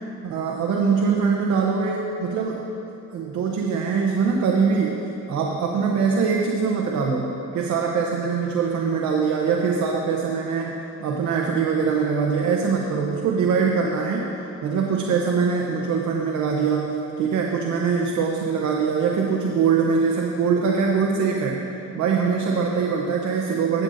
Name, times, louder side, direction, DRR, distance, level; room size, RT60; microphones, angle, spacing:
voice 1, 0.2-2.6 3.1-14.3 14.6-21.6 21.9-23.8, right 5 dB, 75° right, 0 dB, 0.9 m, -23 dB
16.0 x 7.7 x 2.6 m, 2.9 s
cardioid pair, 125°, 29 cm